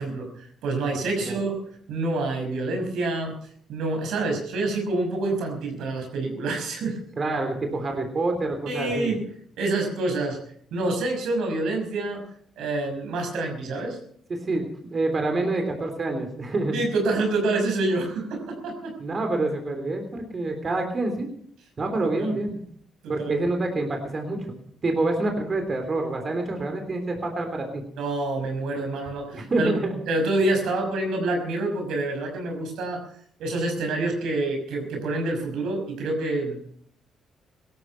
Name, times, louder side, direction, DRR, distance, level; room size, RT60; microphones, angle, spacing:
voice 1, 0.0-1.5 1.9-3.3 3.7-7.0 8.7-9.2 9.6-10.4 10.7-12.2 12.6-14.0 16.7-18.9 22.2-22.3 23.0-23.3 28.0-29.7 30.1-33.0 33.4-36.7, right 2 dB, 80° right, 3 dB, 5.7 m, -27 dB
voice 2, 7.2-9.1 14.3-16.8 19.0-21.3 21.8-22.6 23.1-24.4 24.8-27.8 29.3-29.9, right 2 dB, 40° right, 4 dB, 3.5 m, -27 dB
17.5 x 13.0 x 5.7 m, 0.63 s
cardioid pair, 90°, 0 cm